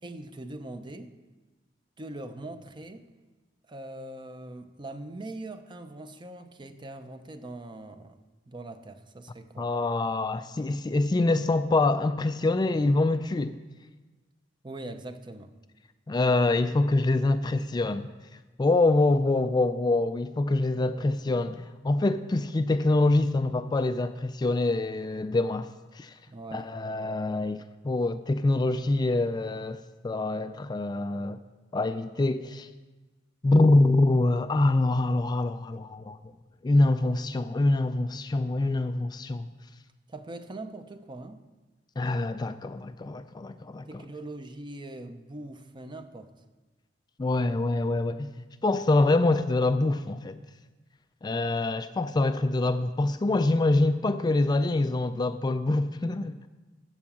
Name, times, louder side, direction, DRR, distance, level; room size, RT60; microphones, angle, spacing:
voice 1, 0.0-1.1 2.0-3.1 3.7-8.2 8.5-9.7 14.6-15.5 26.3-26.7 40.1-41.4 43.9-46.3, right 2 dB, 25° right, 0.6 m, -41 dB
voice 2, 9.6-13.6 16.1-18.1 18.6-25.7 25.9-26.2 26.5-31.4 31.7-32.7 33.4-36.2 36.6-39.5 42.0-43.9 47.2-50.4 51.2-56.3, left 2 dB, 25° left, 0.3 m, -25 dB
14.5 x 4.8 x 7.2 m
head